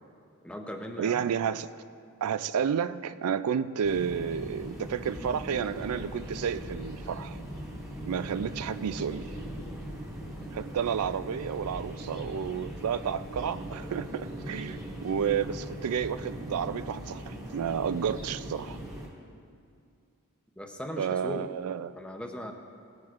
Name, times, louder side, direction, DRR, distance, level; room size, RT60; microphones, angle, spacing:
voice 1, 0.4-1.2 20.6-21.5 22.0-22.5, equal, 5° left, 0.6 m, -38 dB
voice 2, 1.0-1.7 2.2-7.4 8.1-9.4 10.5-18.8 21.0-21.9, right 7 dB, 85° right, 0.4 m, -31 dB
sound 1, 3.8-19.1, equal, 15° right, 1.8 m, -40 dB
18.0 x 10.5 x 2.5 m
head